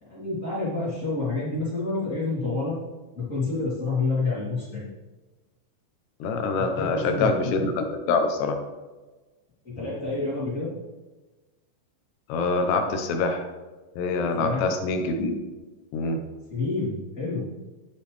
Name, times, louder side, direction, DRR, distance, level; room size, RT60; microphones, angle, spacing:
voice 1, 0.0-2.7 3.1-4.8 6.5-7.4 9.6-10.7 14.4-14.6 16.5-17.4, left 3 dB, 20° left, -8 dB, 2.8 m, -28 dB
voice 2, 6.2-8.6 12.3-13.5 14.0-15.3 15.9-16.2, left 3 dB, 75° left, 5 dB, 2.9 m, -25 dB
10.5 x 8.0 x 3.5 m, 1.2 s
omnidirectional pair, 5.3 m